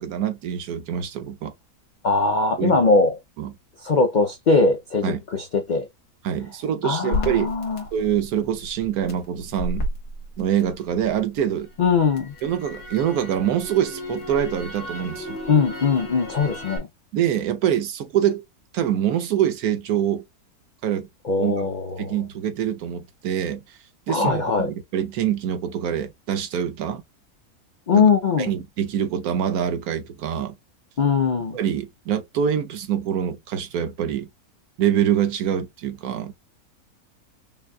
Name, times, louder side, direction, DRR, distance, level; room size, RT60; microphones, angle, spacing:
voice 1, 0.0-1.5 2.6-2.8 3.4-3.5 5.0-5.2 6.2-7.5 7.9-9.8 10.4-11.7 12.4-15.4 17.1-18.4 18.7-20.2 20.8-21.1 21.4-21.5 22.0-23.8 24.1-27.0 27.9-28.1 28.4-30.6 31.5-34.3 34.8-36.3, right 9 dB, 75° right, 1.2 m, -25 dB
voice 2, 2.0-3.1 3.8-5.9 6.8-7.8 11.8-12.3 15.5-16.9 21.2-22.1 24.1-24.7 27.9-28.5 31.0-31.6, left 4 dB, 65° left, 0.4 m, -21 dB
Crackle, 7.1-11.2 11.6-16.8, left 1 dB, 90° left, 1.8 m, -33 dB
5.4 x 2.2 x 2.3 m
omnidirectional pair, 1.6 m